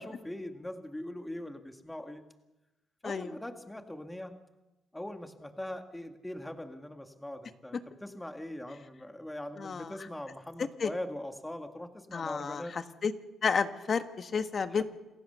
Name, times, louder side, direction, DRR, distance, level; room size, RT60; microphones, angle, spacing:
voice 1, 0.0-2.2 3.0-4.4 4.9-12.8 14.7-14.8, left 1 dB, 10° left, 6 dB, 1.9 m, -41 dB
voice 2, 9.6-9.9 10.8-10.9 12.1-13.1 13.4-14.8, left 5 dB, 45° left, 9 dB, 1.4 m, -31 dB
28.0 x 15.5 x 6.8 m, 1.0 s
cardioid pair, 90°, 0 cm